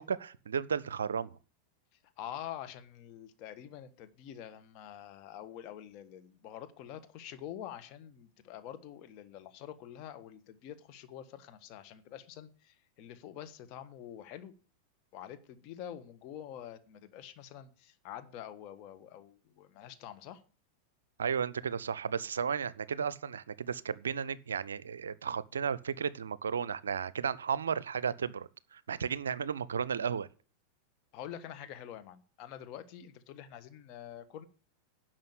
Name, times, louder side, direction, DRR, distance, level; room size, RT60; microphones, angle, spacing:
voice 1, 0.0-1.4 21.2-30.3, right 7 dB, 70° right, 0.5 m, -34 dB
voice 2, 2.2-14.5 15.1-20.4 31.1-34.4, left 10 dB, 40° left, 1.4 m, -46 dB
10.5 x 6.2 x 8.2 m
figure-of-eight pair, 90°, 0 cm